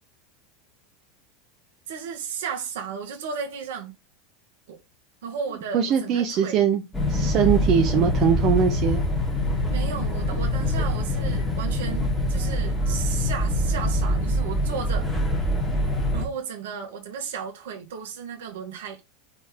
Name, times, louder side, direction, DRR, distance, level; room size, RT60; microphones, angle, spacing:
voice 1, 1.9-3.9 4.7-4.8 5.2-6.7 9.7-15.1 16.1-19.0, right 6 dB, 65° right, 2.1 m, -34 dB
voice 2, 5.7-6.8 7.1-9.0, right 8 dB, 45° right, 1.1 m, -21 dB
sound 1, 6.9-16.2, left 1 dB, 15° left, 3.2 m, -24 dB
5.7 x 4.4 x 4.6 m
figure-of-eight pair, 85°, 0 cm